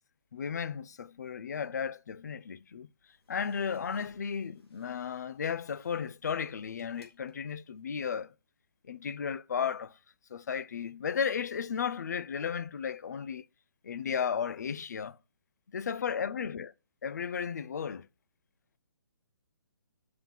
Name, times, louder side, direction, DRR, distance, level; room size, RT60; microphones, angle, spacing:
voice 1, 0.3-2.9 3.3-8.3 8.9-10.0 10.3-13.4 13.8-15.2 15.7-16.7 17.0-18.1, left 7 dB, 45° left, 0.4 m, -34 dB
sound 1, 3.1-7.8, left 2 dB, 80° left, 3.4 m, -64 dB
7.5 x 5.5 x 5.9 m
hypercardioid pair, 175°, 13 cm